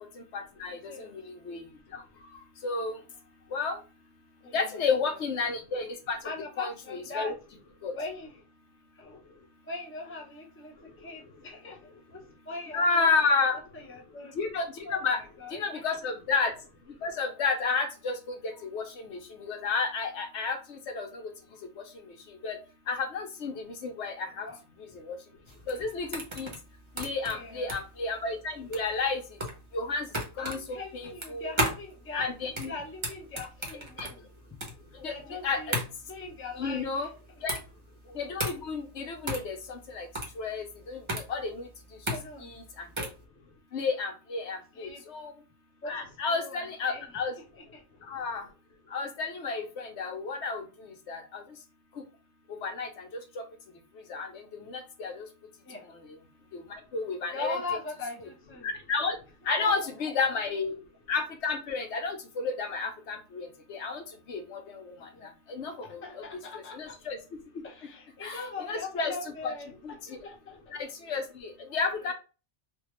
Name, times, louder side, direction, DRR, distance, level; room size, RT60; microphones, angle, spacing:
voice 1, 0.3-0.8 1.1-1.6 2.6-3.0 3.5-3.8 4.5-6.2 6.6-7.3 7.8-7.9 12.7-13.5 14.4-14.6 14.9-15.2 15.5-16.5 17.0-18.2 18.4-21.1 22.4-22.6 22.9-24.5 25.1-25.2 25.7-26.5 27.0-29.2 29.7-30.1 30.4-30.6 30.9-31.5 32.1-32.7 34.0-34.1 35.0-35.1 35.4-35.8 36.6-37.1 37.4-37.6 38.1-40.1 40.4-41.0 41.3-41.7 42.4-42.6 43.7-45.3 45.9-47.3 48.1-48.4 48.9-50.6 51.1-51.4 52.6-53.1 53.4-53.5 54.1-54.3 54.7-55.2 56.5-56.6 56.9-57.6 58.6-59.1 59.5-60.8 61.1-64.0 64.3-64.8 65.5-66.2 66.7-67.2 68.2-69.1 69.4-69.5 69.8-69.9 70.7-72.1, left 4 dB, 75° left, 5 dB, 1.0 m, -31 dB
voice 2, 0.9-1.2 4.4-5.2 6.2-7.3 7.9-8.4 8.9-9.2 9.6-13.4 13.7-14.4 14.8-16.0 24.3-24.6 27.2-27.7 30.4-32.3 32.7-34.3 35.0-35.8 36.1-37.1 42.1-42.5 44.7-45.0 45.8-47.2 47.5-47.8 55.6-55.9 57.3-58.7 59.6-59.9 65.0-65.3 65.6-67.0 67.6-69.8 70.1-70.8 72.0-72.1, left 3 dB, 15° left, 1 dB, 0.5 m, -41 dB
sound 1, 25.5-43.2, right 1 dB, 30° right, 0.7 m, -35 dB
3.3 x 2.2 x 3.0 m, 0.33 s
omnidirectional pair, 1.2 m